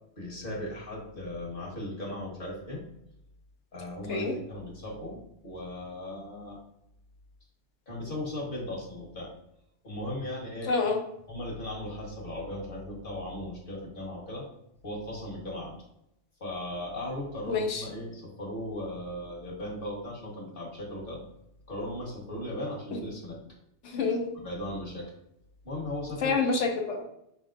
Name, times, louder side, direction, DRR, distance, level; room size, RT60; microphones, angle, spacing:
voice 1, 0.2-2.8 3.7-6.6 7.9-9.3 9.8-10.7 11.3-14.5 14.8-15.7 16.4-21.2 21.7-23.4 24.4-25.1 25.6-26.3, left 1 dB, 50° left, -3 dB, 1.5 m, -37 dB
voice 2, 10.6-11.0 17.5-17.9 22.9-23.0 23.8-24.3 26.2-27.0, left 4 dB, 85° left, 3 dB, 1.1 m, -27 dB
5.2 x 3.5 x 2.5 m, 0.80 s
omnidirectional pair, 1.2 m